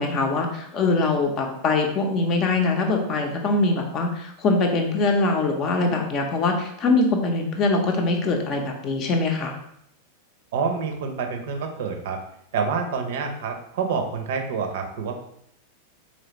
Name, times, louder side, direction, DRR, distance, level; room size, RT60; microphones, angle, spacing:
voice 1, 0.0-9.5, left 3 dB, 35° left, 3 dB, 0.6 m, -23 dB
voice 2, 10.5-12.2 12.5-15.2, right 5 dB, 55° right, 4 dB, 0.6 m, -27 dB
4.0 x 3.1 x 2.9 m, 0.74 s
figure-of-eight pair, 90°, 0 cm